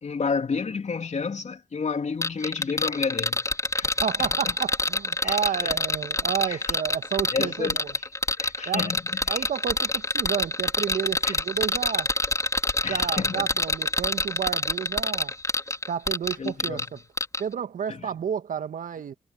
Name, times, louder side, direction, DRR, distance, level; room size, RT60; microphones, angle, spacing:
voice 1, 0.0-3.4 3.7-3.9 5.2-5.8 6.5-6.6 7.3-7.8 8.4-9.5 11.2-11.4 12.8-13.5 16.4-16.9 17.9-18.1, left 5 dB, 50° left, 3.3 m, -30 dB
sound 1, 2.2-16.9 17.2-17.4, left 2 dB, 20° left, 4.2 m, -26 dB
voice 2, 3.8-7.9 8.7-8.9 9.3-12.1 12.9-15.3 15.9-17.0 17.4-19.1, right 8 dB, 70° right, 1.7 m, -31 dB
supercardioid pair, 40°, 15 cm